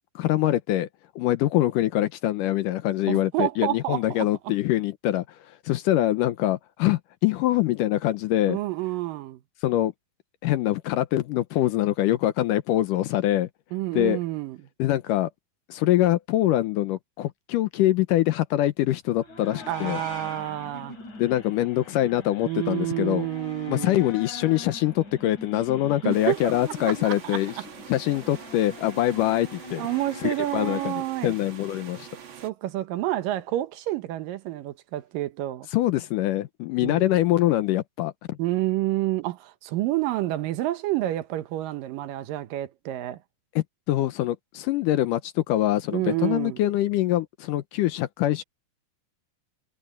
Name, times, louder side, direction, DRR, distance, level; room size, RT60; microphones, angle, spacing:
voice 1, 0.2-0.9 1.2-5.2 5.7-8.6 9.6-9.9 10.4-13.5 13.9-14.2 14.8-15.3 15.7-20.0 21.2-23.3 23.7-27.5 27.9-29.9 30.2-32.1 35.7-38.4 43.6-48.4, left 14 dB, 75° left, 2.2 m, -24 dB
voice 2, 3.1-4.3 8.5-9.4 13.7-14.6 19.7-21.0 22.4-24.1 26.0-26.5 26.9-27.6 29.8-31.4 32.4-35.7 36.8-37.1 38.4-43.2 45.9-46.6, right 15 dB, 75° right, 2.5 m, -29 dB
sound 1, 19.1-30.9, left 2 dB, 55° left, 6.8 m, -42 dB
sound 2, 26.1-32.5, right 8 dB, 50° right, 1.5 m, -45 dB
omnidirectional pair, 4.2 m